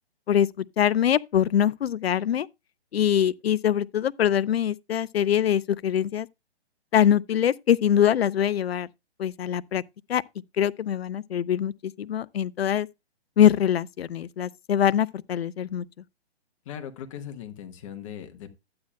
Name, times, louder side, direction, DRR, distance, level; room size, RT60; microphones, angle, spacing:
voice 1, 0.3-2.5 2.9-6.3 6.9-8.9 9.2-9.8 10.1-10.2 10.6-12.9 13.4-15.9, left 10 dB, 65° left, 0.5 m, -23 dB
voice 2, 16.6-18.5, left 9 dB, 30° left, 1.0 m, -39 dB
12.0 x 8.7 x 2.2 m
figure-of-eight pair, 135°, 33 cm